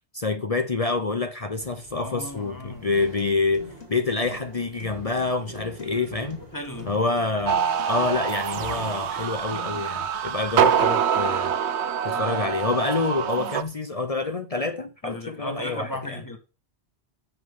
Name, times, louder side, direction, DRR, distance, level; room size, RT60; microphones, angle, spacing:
voice 1, 0.1-6.4 6.9-7.6 7.9-11.5 12.0-16.2, left 3 dB, 35° left, 0.8 m, -27 dB
sound 1, 1.6-10.9, right 2 dB, 40° right, 2.0 m, -45 dB
voice 2, 1.9-2.9 6.5-6.9 12.1-12.4 12.7-12.8 13.3-13.5 15.0-16.4, left 1 dB, 15° left, 1.8 m, -36 dB
sound 2, 2.8-10.8, left 7 dB, 80° left, 2.7 m, -46 dB
sound 3, 7.5-13.6, right 8 dB, 80° right, 1.0 m, -25 dB
9.6 x 7.6 x 5.6 m
omnidirectional pair, 1.1 m